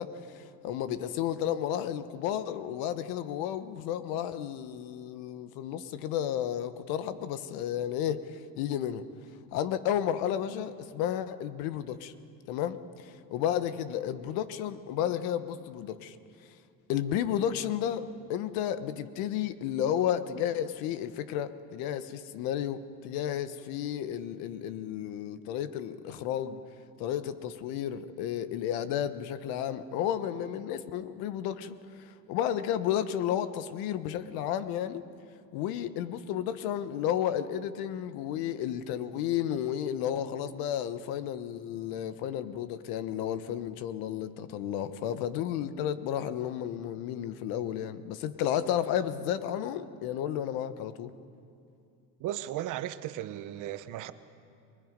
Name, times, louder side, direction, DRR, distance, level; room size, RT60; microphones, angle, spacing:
voice 1, 0.0-9.0 9.5-12.1 12.5-16.2 16.9-26.6 27.0-35.0 35.5-51.1, left 10 dB, 80° left, 1.2 m, -32 dB
voice 2, 52.2-54.1, right 13 dB, 55° right, 1.0 m, -36 dB
30.0 x 21.0 x 5.2 m
cardioid pair, 120°, 36 cm